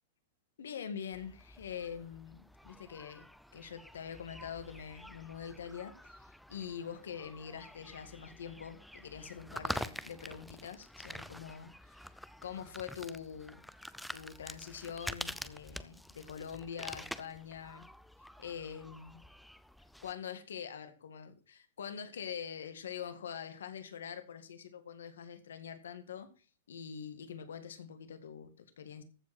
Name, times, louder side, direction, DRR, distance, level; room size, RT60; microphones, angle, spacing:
voice 1, 0.6-3.3 3.5-12.1 12.4-13.6 14.1-17.9 18.4-19.3 20.0-29.0, left 7 dB, 85° left, 10 dB, 1.9 m, -44 dB
sound 1, 1.1-20.1, equal, ahead, 0.6 m, -47 dB
14.5 x 5.1 x 6.0 m, 0.36 s
hypercardioid pair, 130°, 0 cm